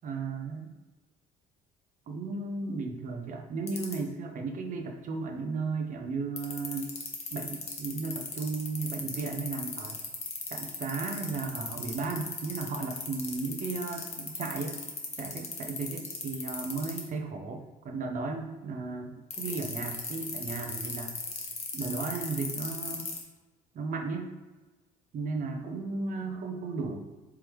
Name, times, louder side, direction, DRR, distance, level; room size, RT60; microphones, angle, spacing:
voice 1, 0.0-0.7 2.1-6.9 7.3-10.0 10.5-14.8 15.2-21.1 21.7-23.1 23.7-24.3 25.1-27.0, right 4 dB, 50° right, 4 dB, 0.6 m, -35 dB
sound 1, 3.7-3.9 6.4-17.0 19.3-23.2, left 5 dB, 40° left, 1.0 m, -36 dB
4.7 x 3.5 x 3.1 m, 1.2 s
cardioid pair, 110°, 17 cm